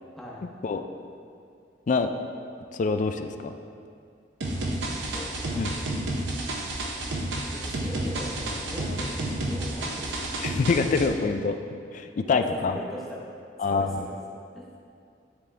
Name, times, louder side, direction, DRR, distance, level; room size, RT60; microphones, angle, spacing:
voice 1, 0.2-0.5 4.5-5.6 7.5-10.3 11.0-11.2 12.2-13.3 13.6-14.2 14.5-14.7, left 1 dB, ahead, -6 dB, 0.9 m, -40 dB
voice 2, 2.7-3.5 5.6-5.7 10.4-11.5 11.9-12.7 13.6-14.0, left 4 dB, 45° left, 7 dB, 0.3 m, -25 dB
sound 1, 4.4-11.1, right 1 dB, 70° right, 0.7 m, -31 dB
9.7 x 3.6 x 3.4 m, 2.3 s
head